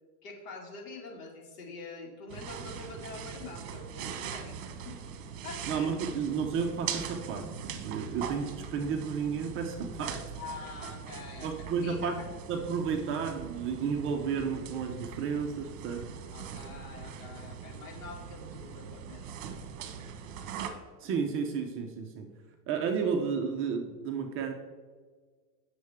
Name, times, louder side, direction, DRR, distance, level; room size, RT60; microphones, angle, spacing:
voice 1, 0.2-4.6 4.8-5.0 5.4-5.9 10.3-12.2 16.3-19.5, left 3 dB, 55° left, 0 dB, 2.2 m, -45 dB
sound 1, 2.3-20.7, right 7 dB, 55° right, 1.3 m, -41 dB
voice 2, 5.7-7.5 7.8-10.2 11.4-16.1 21.0-22.3 22.7-24.5, right 6 dB, 25° right, 4 dB, 0.6 m, -32 dB
9.2 x 6.6 x 3.5 m, 1.5 s
supercardioid pair, 140°, 47 cm